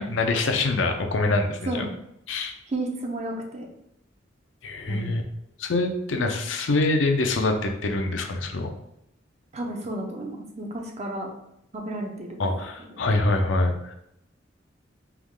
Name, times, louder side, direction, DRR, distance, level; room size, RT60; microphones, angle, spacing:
voice 1, 0.0-1.8 2.3-2.5 4.6-5.2 5.6-8.7 12.4-13.9, left 2 dB, 85° left, 4 dB, 0.6 m, -25 dB
voice 2, 2.7-3.7 4.9-5.2 6.2-6.3 9.5-11.3 11.7-13.1, right 1 dB, 35° right, 1 dB, 0.7 m, -33 dB
3.5 x 3.1 x 3.6 m, 0.78 s
head